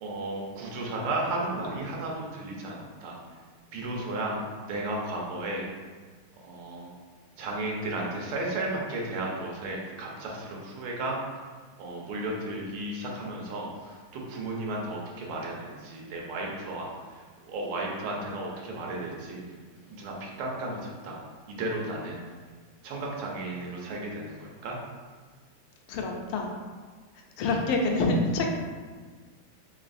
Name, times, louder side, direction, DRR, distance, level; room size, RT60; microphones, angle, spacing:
voice 1, 0.0-3.2 3.7-4.4 4.7-5.6 6.4-6.9 7.4-11.2 11.8-17.2 17.4-19.4 19.9-21.2 21.5-22.2 22.8-24.8, right 2 dB, 85° right, -2 dB, 1.6 m, -34 dB
voice 2, 25.9-26.5 27.4-28.5, left 2 dB, 85° left, 1 dB, 1.5 m, -26 dB
4.0 x 3.0 x 2.5 m, 1.5 s
omnidirectional pair, 2.4 m